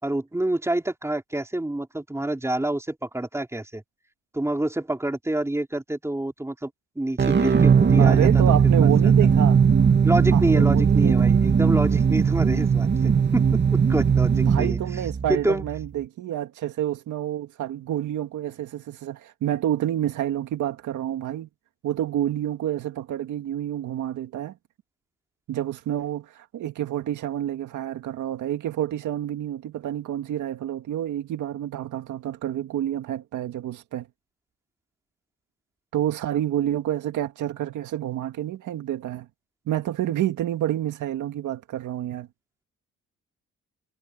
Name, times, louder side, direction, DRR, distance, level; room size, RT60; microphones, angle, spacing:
voice 1, 0.0-3.8 4.3-6.7 7.0-8.4 8.8-8.9 10.0-14.8 15.3-15.6, right 1 dB, 10° right, 4.1 m, -27 dB
sound 1, 7.2-15.9, right 6 dB, 35° right, 2.1 m, -19 dB
voice 2, 8.0-9.6 10.3-11.2 14.5-21.5 21.8-24.5 25.5-34.1 35.9-39.3 39.7-42.3, right 12 dB, 80° right, 2.1 m, -28 dB
cardioid pair, 90°, 30 cm